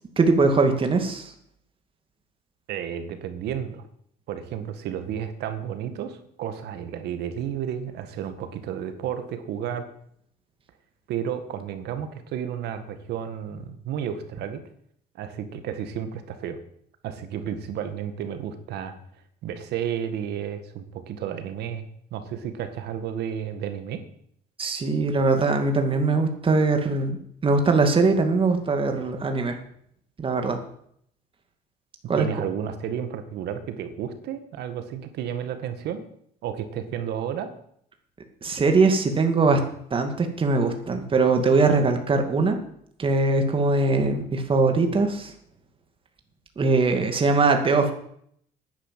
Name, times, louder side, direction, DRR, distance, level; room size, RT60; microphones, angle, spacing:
voice 1, 0.2-1.3 24.6-27.2 27.4-29.6 30.2-30.6 32.1-32.3 38.4-39.6 39.9-42.6 43.0-45.3 46.6-47.9, right 3 dB, 30° right, 5 dB, 2.3 m, -21 dB
voice 2, 2.7-3.8 4.3-9.8 11.1-14.6 15.2-16.6 17.0-18.9 19.4-21.9 22.1-24.0 32.1-36.1 36.4-37.5, right 9 dB, 75° right, 9 dB, 1.9 m, -32 dB
10.0 x 10.0 x 7.6 m, 0.68 s
cardioid pair, 110°, 17 cm